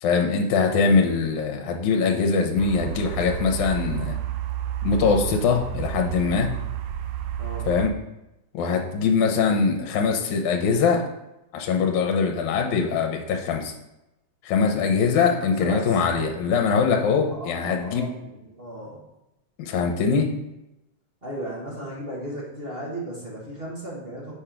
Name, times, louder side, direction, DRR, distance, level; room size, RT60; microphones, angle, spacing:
voice 1, 0.0-4.2 4.8-6.5 7.7-7.9 8.5-11.0 11.5-13.7 14.4-18.1 19.6-20.3, left 5 dB, 80° left, 3 dB, 2.3 m, -22 dB
sound 1, 2.6-7.9, right 11 dB, 80° right, 1.8 m, -31 dB
voice 2, 7.4-7.7 15.4-16.0 17.3-19.0 21.2-24.3, right 1 dB, 35° right, -5 dB, 0.9 m, -35 dB
6.4 x 4.5 x 5.1 m, 0.91 s
omnidirectional pair, 3.4 m